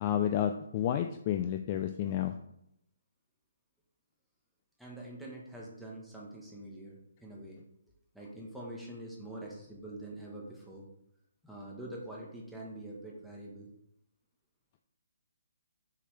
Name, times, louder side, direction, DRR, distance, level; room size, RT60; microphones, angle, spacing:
voice 1, 0.0-2.3, left 10 dB, 25° left, 6 dB, 0.3 m, -30 dB
voice 2, 4.8-7.6 8.1-10.9 11.4-13.7, right 1 dB, ahead, -5 dB, 1.2 m, -45 dB
6.8 x 5.6 x 3.3 m, 0.79 s
hypercardioid pair, 170°, 0 cm